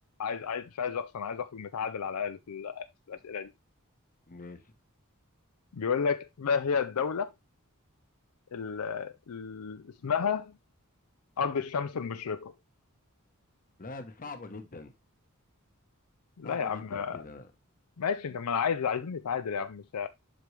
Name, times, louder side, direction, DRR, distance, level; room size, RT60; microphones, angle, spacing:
voice 1, 0.2-3.5 5.7-7.3 8.5-10.5 11.4-12.5 16.4-17.2 18.0-20.1, left 6 dB, 75° left, 0.5 m, -32 dB
voice 2, 4.3-4.7 13.8-14.9 16.4-17.5, left 3 dB, 40° left, 1.0 m, -44 dB
7.7 x 5.3 x 3.2 m
head